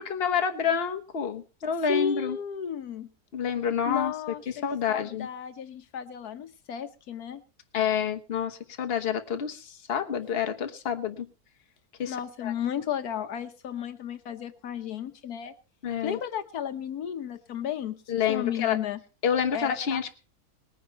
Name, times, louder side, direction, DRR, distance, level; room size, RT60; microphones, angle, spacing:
voice 1, 0.0-2.4 3.3-4.1 4.5-5.3 7.7-11.3 12.0-12.2 12.4-12.5 15.8-16.2 18.1-18.8 19.2-20.1, left 7 dB, 45° left, 5 dB, 1.3 m, -28 dB
voice 2, 1.9-3.1 3.9-4.4 4.9-7.4 12.1-15.5 16.0-18.0 18.3-19.0 19.5-20.1, left 8 dB, 75° left, 9 dB, 1.4 m, -33 dB
19.5 x 9.7 x 4.5 m, 0.36 s
omnidirectional pair, 1.6 m